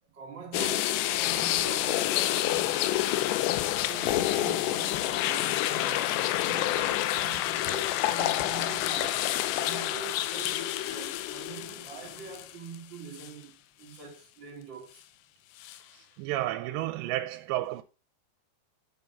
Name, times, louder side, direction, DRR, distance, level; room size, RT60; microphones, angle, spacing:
voice 1, 0.0-2.9 3.9-9.3 9.6-15.0, right 5 dB, 45° right, 1.6 m, -44 dB
sound 1, 0.5-12.8 13.2-13.3 15.6-15.8, left 14 dB, 80° left, 2.8 m, -28 dB
voice 2, 15.9-17.8, right 15 dB, 85° right, 2.8 m, -32 dB
6.9 x 6.9 x 5.6 m
omnidirectional pair, 5.0 m